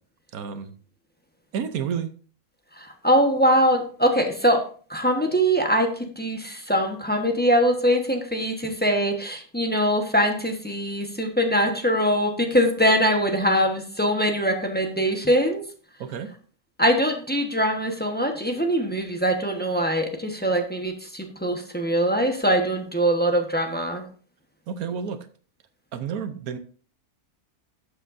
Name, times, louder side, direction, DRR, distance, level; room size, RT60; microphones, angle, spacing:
voice 1, 0.3-0.7 1.5-2.1 16.0-16.3 24.7-25.2 25.9-26.6, right 7 dB, 70° right, 10 dB, 1.2 m, -30 dB
voice 2, 2.8-4.6 4.9-15.6 16.8-24.0, equal, 5° left, 4 dB, 1.0 m, -22 dB
12.0 x 7.6 x 2.6 m, 0.43 s
omnidirectional pair, 1.6 m